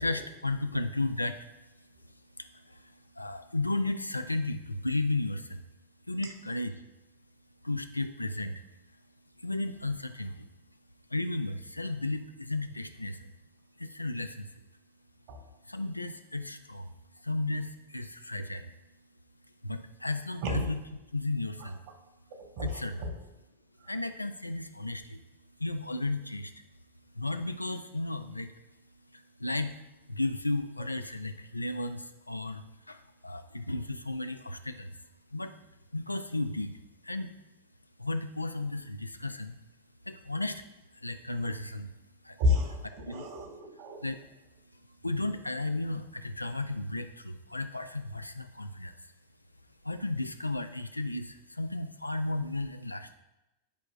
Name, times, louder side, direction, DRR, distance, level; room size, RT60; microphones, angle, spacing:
voice 1, 0.0-1.5 2.0-2.1 2.4-5.6 6.1-6.8 7.6-8.6 9.4-10.5 11.1-13.3 13.8-14.5 15.7-16.9 17.2-18.7 19.6-20.8 21.1-21.8 22.6-23.1 23.9-25.2 25.6-26.5 27.1-28.5 29.1-29.8 30.1-35.0 35.3-35.5 35.9-36.8 37.0-37.3 38.0-39.5 40.1-40.6 40.9-41.9 42.2-42.4 43.1-43.3 44.0-44.2 44.7-49.1 49.8-53.1, left 2 dB, 85° left, 9 dB, 0.4 m, -34 dB
voice 2, 22.6-23.1 23.8-23.9 42.4-44.0, left 2 dB, 50° right, 2 dB, 1.5 m, -31 dB
10.5 x 4.8 x 2.4 m, 0.96 s
figure-of-eight pair, 90°, 0 cm